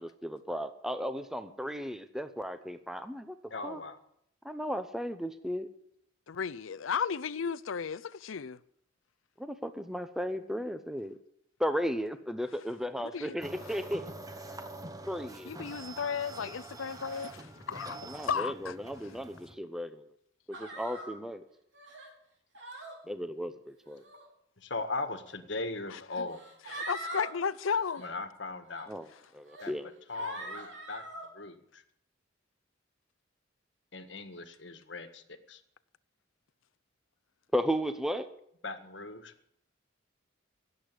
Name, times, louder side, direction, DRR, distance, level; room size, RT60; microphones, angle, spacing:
voice 1, 0.0-3.4 3.6-3.8 4.4-5.7 9.4-11.2 11.6-14.1 15.1-15.5 18.1-20.0 20.5-21.4 23.1-24.0 28.9-29.1 29.3-29.9 37.5-38.3, equal, ahead, 0.7 m, -35 dB
voice 2, 3.5-4.0 24.6-26.4 28.0-28.9 29.6-29.7 30.1-31.0 31.3-31.8 33.9-35.6 38.6-39.3, left 3 dB, 65° left, 1.5 m, -39 dB
voice 3, 6.3-8.6 13.0-13.4 15.4-18.7 25.9-26.3 26.7-28.0, left 6 dB, 90° left, 0.6 m, -34 dB
sound 1, 13.4-19.5, right 2 dB, 20° right, 1.1 m, -45 dB
sound 2, 20.5-21.1 21.7-22.1 22.5-22.9 23.8-24.2 25.3-25.4 26.3-27.3 27.7-28.1 28.7-28.8 29.5-29.7 30.1-31.3, right 2 dB, 65° right, 4.2 m, -42 dB
17.0 x 8.1 x 8.3 m
head